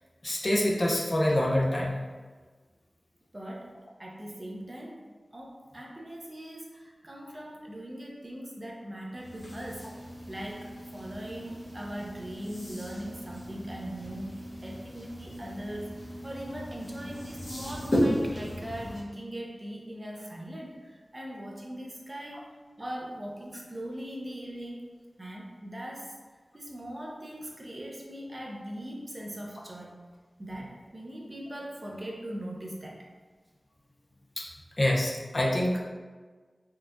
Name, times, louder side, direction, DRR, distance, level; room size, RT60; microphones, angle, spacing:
voice 1, 0.2-1.9 34.4-34.5 34.8-35.8, left 1 dB, 40° left, -2 dB, 0.6 m, -26 dB
voice 2, 3.3-3.7 4.0-5.0 5.3-9.9 10.3-16.0 16.2-22.5 22.8-24.9 25.2-26.1 26.5-29.9 30.4-33.1, equal, 30° right, -1 dB, 0.6 m, -40 dB
sound 1, 9.1-19.0, equal, 65° left, 0.9 m, -35 dB
4.4 x 2.5 x 2.2 m, 1.4 s
wide cardioid pair, 70°, 0 cm